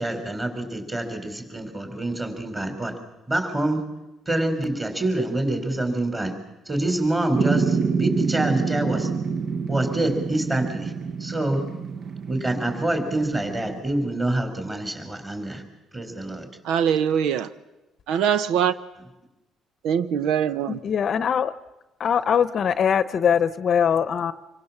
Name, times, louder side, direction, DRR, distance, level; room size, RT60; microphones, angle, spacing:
voice 1, 0.0-3.0 3.3-3.8 4.3-6.4 6.7-9.1 9.7-10.9 11.2-11.7 12.3-15.6 15.9-16.5, right 1 dB, 20° right, 6 dB, 4.2 m, -26 dB
sound 1, 7.3-13.8, right 5 dB, 50° right, 1.3 m, -27 dB
voice 2, 16.6-17.5 18.1-18.7 19.8-20.8, right 8 dB, 90° right, 14 dB, 0.9 m, -22 dB
voice 3, 20.7-21.5 22.0-24.3, left 7 dB, 45° left, 14 dB, 0.9 m, -22 dB
26.5 x 23.0 x 7.3 m, 1.0 s
cardioid pair, 140°, 0 cm